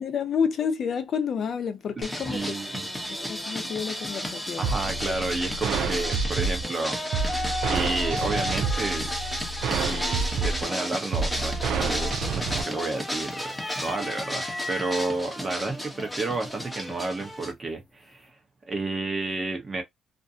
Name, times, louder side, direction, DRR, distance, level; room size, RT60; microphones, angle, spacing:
voice 1, 0.0-2.6 3.1-4.7 5.1-5.2, left 6 dB, 60° left, 0.7 m, -29 dB
sound 1, 2.0-17.5, left 1 dB, 5° left, 0.9 m, -33 dB
voice 2, 2.3-2.9 4.6-7.0 7.7-9.1 9.8-18.4 18.6-19.8, right 3 dB, 30° right, 0.9 m, -31 dB
sound 2, 4.6-12.6, right 5 dB, 80° right, 0.4 m, -29 dB
sound 3, 11.4-11.8 12.1-12.8 13.2-15.2 16.0-16.1 17.4-17.8, left 2 dB, 20° left, 0.4 m, -37 dB
2.6 x 2.2 x 2.7 m
cardioid pair, 90°, 0 cm